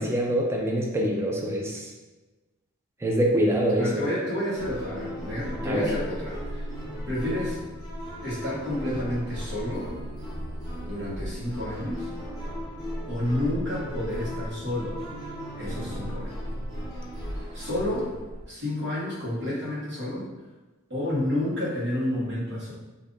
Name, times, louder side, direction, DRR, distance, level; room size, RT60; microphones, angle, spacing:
voice 1, 0.0-1.9 3.0-3.9 5.6-5.9, right 1 dB, 10° right, -1 dB, 0.3 m, -25 dB
voice 2, 3.8-6.7 7.1-7.6 8.2-9.9 10.8-12.1 13.0-15.0 15.6-16.4 17.5-18.1 18.5-20.3 20.9-22.7, left 1 dB, 55° right, -7 dB, 1.2 m, -30 dB
sound 1, 4.5-18.4, equal, 20° left, 0.9 m, -36 dB
2.6 x 2.5 x 3.7 m, 1.1 s
head